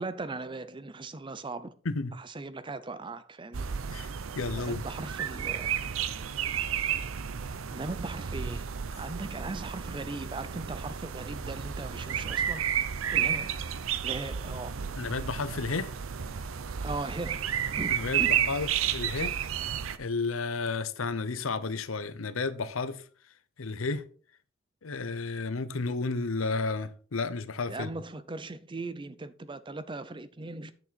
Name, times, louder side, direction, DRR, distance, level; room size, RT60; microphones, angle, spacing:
voice 1, 0.0-1.7 2.1-3.7 4.6-5.8 7.7-8.7 9.0-12.7 13.1-13.6 14.0-14.8 16.8-17.5 17.8-18.5 27.7-30.7, right 3 dB, 25° right, 0.5 m, -38 dB
sound 1, 3.5-20.0, right 8 dB, 80° right, 0.6 m, -32 dB
voice 2, 4.4-4.8 13.2-13.3 15.0-15.9 17.9-19.3 20.0-23.0 23.6-24.0 24.8-27.9, left 4 dB, 80° left, 0.8 m, -32 dB
8.3 x 6.9 x 4.2 m
head